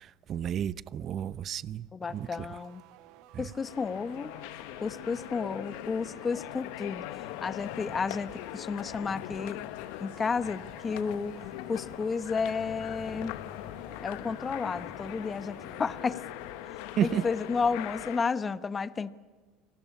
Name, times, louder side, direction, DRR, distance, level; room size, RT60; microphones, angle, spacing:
voice 1, 0.0-2.5 3.3-3.4 17.0-17.2, right 9 dB, 45° right, 0.8 m, -32 dB
voice 2, 1.9-2.8 3.4-4.4 4.8-9.6 10.0-13.4 14.0-16.2 16.7-19.1, left 5 dB, 25° left, 1.1 m, -32 dB
sound 1, 2.0-17.5, right 14 dB, 65° right, 1.4 m, -55 dB
sound 2, 3.6-18.2, left 17 dB, 75° left, 0.9 m, -41 dB
sound 3, 6.8-16.0, left 7 dB, 60° left, 3.9 m, -51 dB
28.0 x 19.0 x 8.5 m
supercardioid pair, 105°, 0 cm